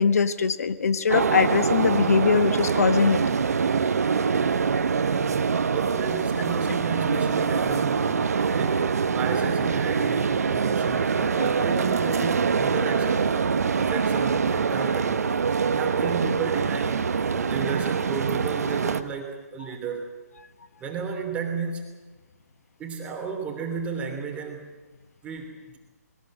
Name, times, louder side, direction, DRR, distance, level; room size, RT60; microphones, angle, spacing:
voice 1, 0.0-3.2, left 5 dB, 65° left, 12 dB, 1.4 m, -21 dB
sound 1, 1.1-19.0, right 5 dB, 70° right, 1.4 m, -24 dB
voice 2, 5.7-8.3 8.6-13.4 13.7-15.4 15.7-20.1 20.8-21.9 22.8-24.7 25.2-25.8, right 5 dB, 15° right, 1 dB, 3.1 m, -33 dB
21.0 x 19.5 x 8.9 m, 1.2 s
figure-of-eight pair, 140°, 9 cm